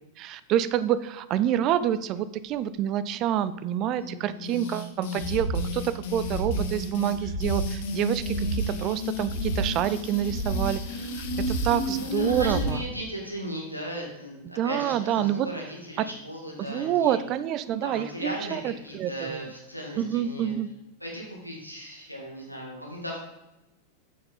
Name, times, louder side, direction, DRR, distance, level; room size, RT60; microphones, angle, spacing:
voice 1, 0.2-12.8 14.6-15.5 16.0-16.1 16.6-19.5 20.0-20.7, right 11 dB, 35° right, 15 dB, 0.4 m, -27 dB
voice 2, 4.0-4.6 8.3-9.0 11.9-17.2 17.8-20.5 21.0-23.2, equal, 90° right, -2 dB, 2.2 m, -37 dB
sound 1, 4.4-12.8, left 2 dB, 50° left, 1.3 m, -33 dB
sound 2, 5.2-5.6 6.1-6.7 7.1-7.7 8.1-8.7 9.1-9.7 10.1-10.7 11.1-11.7 12.1-12.7, right 2 dB, 80° left, 1.3 m, -30 dB
8.7 x 6.7 x 4.1 m, 0.96 s
figure-of-eight pair, 90°, 0 cm